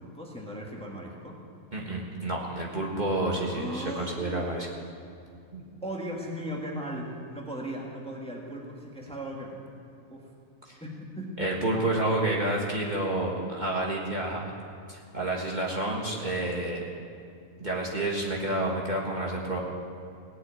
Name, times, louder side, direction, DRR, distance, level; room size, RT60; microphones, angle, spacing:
voice 1, 0.0-1.4 3.4-4.5 5.8-9.6 10.1-10.3 10.8-11.3, equal, 5° left, -2 dB, 1.7 m, -37 dB
voice 2, 1.7-4.7 5.5-5.6 10.7-10.8 11.4-14.5 14.9-16.9 17.6-19.6, right 1 dB, 35° right, -3 dB, 1.7 m, -29 dB
17.5 x 7.8 x 9.0 m, 2.4 s
omnidirectional pair, 1.4 m